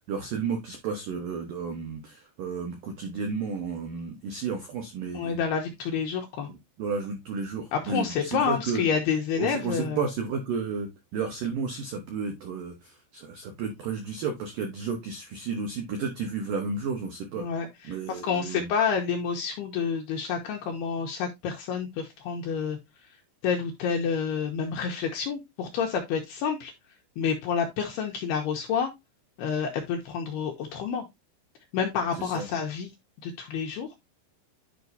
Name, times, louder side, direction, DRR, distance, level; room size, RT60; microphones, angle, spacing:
voice 1, 0.1-5.4 6.5-8.9 9.4-17.5 17.8-18.7 32.2-32.5, right 5 dB, 90° right, 4 dB, 1.8 m, -32 dB
voice 2, 5.1-6.5 7.7-10.0 17.4-22.8 23.4-26.7 27.2-28.9 29.4-31.0 31.7-32.9 33.2-33.9, left 6 dB, 80° left, 2 dB, 2.3 m, -29 dB
10.5 x 5.0 x 2.7 m, 0.20 s
omnidirectional pair, 5.6 m